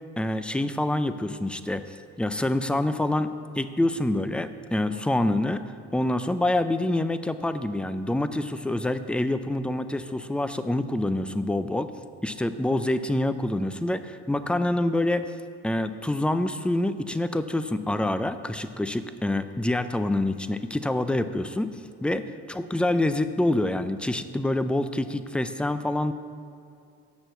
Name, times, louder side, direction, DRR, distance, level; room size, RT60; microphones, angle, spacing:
voice 1, 0.2-5.6 5.9-11.9 12.2-15.3 15.6-26.1, left 1 dB, 5° left, 11 dB, 0.4 m, -26 dB
7.0 x 6.2 x 7.7 m, 2.4 s
cardioid pair, 90°, 30 cm